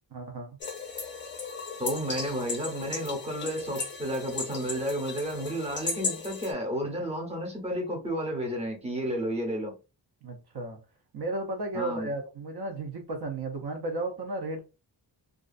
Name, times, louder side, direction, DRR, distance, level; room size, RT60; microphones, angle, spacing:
voice 1, 0.1-0.5 10.2-10.8 11.1-14.6, right 2 dB, 55° right, 0.6 m, -34 dB
sound 1, 0.6-6.5, left 4 dB, 25° left, 0.4 m, -36 dB
voice 2, 1.8-9.7 11.7-12.1, equal, 15° right, 0.7 m, -32 dB
2.4 x 2.3 x 2.4 m
wide cardioid pair, 170°, 45 cm